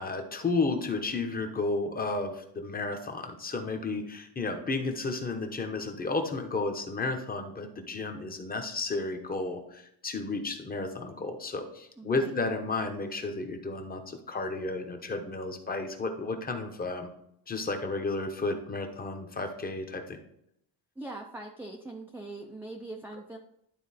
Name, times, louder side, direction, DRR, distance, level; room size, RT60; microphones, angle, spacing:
voice 1, 0.0-17.1 17.5-20.2, left 3 dB, 20° left, 5 dB, 0.9 m, -32 dB
voice 2, 12.0-12.4 21.0-23.4, right 2 dB, 5° right, 1 dB, 0.5 m, -42 dB
12.0 x 4.0 x 4.2 m, 0.76 s
cardioid pair, 160°, 48 cm